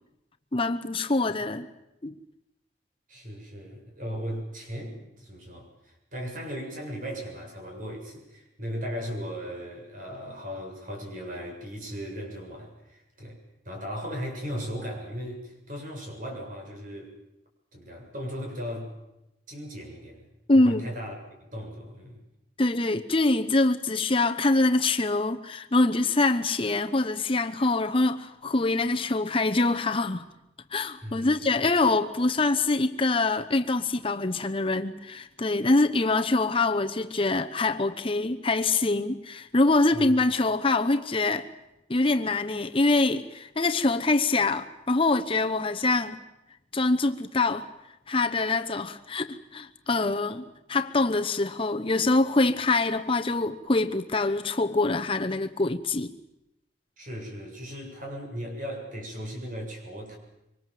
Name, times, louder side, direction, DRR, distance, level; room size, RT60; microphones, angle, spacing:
voice 1, 0.5-1.7 2.0-2.1 20.5-20.8 22.6-30.3 30.7-41.5 41.9-46.2 46.7-47.7 48.1-56.1, left 2 dB, 30° left, 0.9 m, -24 dB
voice 2, 3.1-13.4 13.6-17.2 17.7-18.9 19.5-20.2 20.5-21.1 21.5-22.2 31.0-31.7 39.9-40.1 57.0-60.2, equal, 45° right, 7.6 m, -37 dB
26.0 x 25.0 x 7.7 m
head